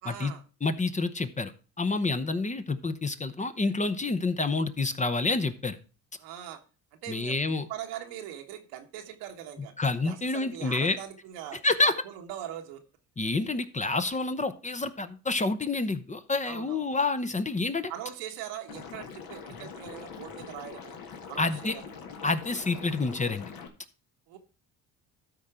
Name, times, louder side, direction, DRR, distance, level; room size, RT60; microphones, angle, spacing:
voice 1, 0.0-0.4 6.2-6.6 7.0-7.4 7.7-9.7 10.0-12.8 13.9-14.0 16.4-17.0 17.9-21.0 21.3-22.0 24.3-24.4, right 11 dB, 90° right, 4 dB, 1.4 m, -41 dB
voice 2, 0.6-1.5 1.8-5.8 7.1-7.7 9.8-11.0 11.6-11.9 13.2-17.9 21.4-21.7 22.2-23.5, left 3 dB, 20° left, 10 dB, 0.8 m, -28 dB
Liquid, 18.7-23.7, left 6 dB, 60° left, 1.8 m, -43 dB
13.0 x 4.3 x 4.9 m, 0.35 s
supercardioid pair, 85°, 39 cm